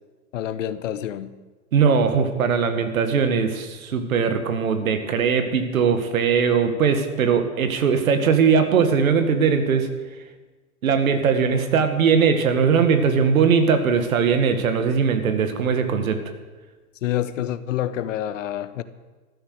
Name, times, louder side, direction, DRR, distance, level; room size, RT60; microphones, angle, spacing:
voice 1, 0.3-1.4 17.0-18.8, left 12 dB, 60° left, 14 dB, 1.0 m, -27 dB
voice 2, 1.7-9.9 10.8-16.2, right 6 dB, 65° right, 7 dB, 2.0 m, -20 dB
14.0 x 12.5 x 6.8 m, 1.3 s
figure-of-eight pair, 105°, 44 cm